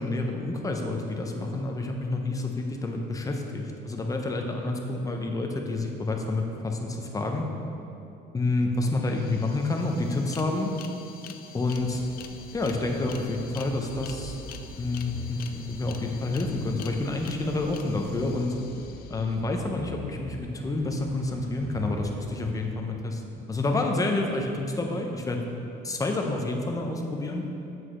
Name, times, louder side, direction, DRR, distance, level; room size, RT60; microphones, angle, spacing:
voice 1, 0.0-7.5 8.3-10.7 11.5-12.0 12.5-14.4 14.8-18.6 19.1-25.4 25.8-27.5, left 2 dB, 20° left, 2 dB, 0.7 m, -29 dB
sound 1, 8.6-8.7 8.9-19.7, left 8 dB, 65° left, 0.4 m, -47 dB
sound 2, 11.6-22.3, right 2 dB, 70° right, 1.1 m, -44 dB
7.6 x 6.1 x 3.2 m, 2.8 s
cardioid pair, 110°, 17 cm